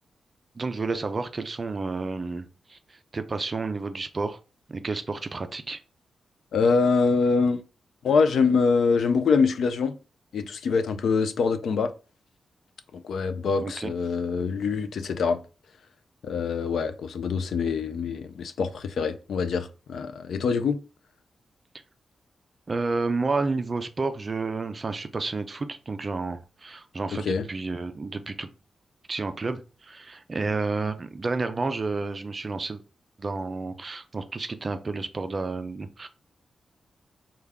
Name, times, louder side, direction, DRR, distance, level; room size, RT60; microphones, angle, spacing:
voice 1, 0.6-2.8 3.1-4.4 4.7-5.8 13.6-13.9 22.7-28.5 29.1-32.8 33.2-36.1, right 3 dB, 30° right, 0.3 m, -30 dB
voice 2, 6.5-7.6 8.0-9.9 10.3-11.9 12.9-15.4 16.2-20.8 27.1-27.5, left 5 dB, 80° left, 0.3 m, -24 dB
3.4 x 2.2 x 3.5 m
wide cardioid pair, 150°, 0 cm